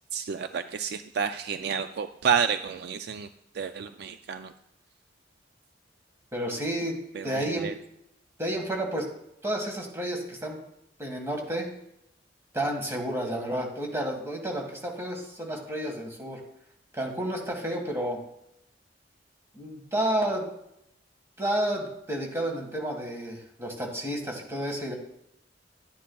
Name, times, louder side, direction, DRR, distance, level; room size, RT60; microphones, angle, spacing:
voice 1, 0.1-3.3 3.5-4.5 7.2-7.7, right 7 dB, 60° right, 10 dB, 0.3 m, -30 dB
voice 2, 6.3-7.0 7.2-7.7 8.4-9.1 9.4-10.6 11.0-11.7 12.5-16.4 16.9-18.2 19.6-20.4 21.4-24.9, right 1 dB, 15° right, 1 dB, 1.6 m, -31 dB
11.5 x 10.0 x 2.3 m, 0.79 s
head